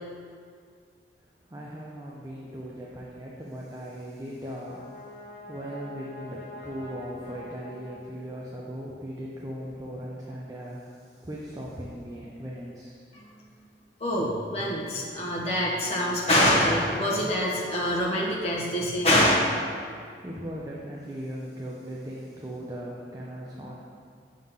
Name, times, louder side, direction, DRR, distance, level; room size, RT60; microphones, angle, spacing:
voice 1, 1.5-5.2 5.5-13.0 20.2-23.8, equal, 20° right, -5 dB, 0.6 m, -38 dB
Brass instrument, 4.2-8.7, left 1 dB, 70° left, 1.2 m, -45 dB
voice 2, 14.0-19.3, left 1 dB, 35° left, -4 dB, 1.2 m, -25 dB
6.2 x 3.7 x 5.5 m, 2.2 s
head